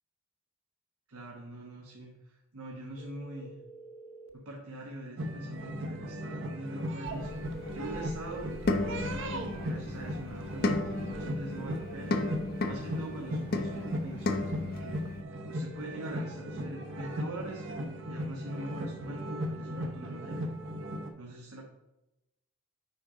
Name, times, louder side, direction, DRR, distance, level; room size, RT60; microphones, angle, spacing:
voice 1, 1.1-3.6 4.3-8.5 8.8-12.2 12.6-15.0 15.5-17.6 18.1-20.5 21.2-21.7, right 1 dB, 80° right, -1 dB, 1.2 m, -43 dB
sound 1, 3.0-4.4 7.2-8.6 11.4-12.9 15.7-17.1, right 2 dB, 70° left, 0.8 m, -49 dB
sound 2, 5.2-21.1, equal, 55° right, 0.9 m, -37 dB
sound 3, 7.1-15.2, left 2 dB, 45° left, 0.6 m, -35 dB
8.5 x 5.0 x 3.8 m, 0.93 s
head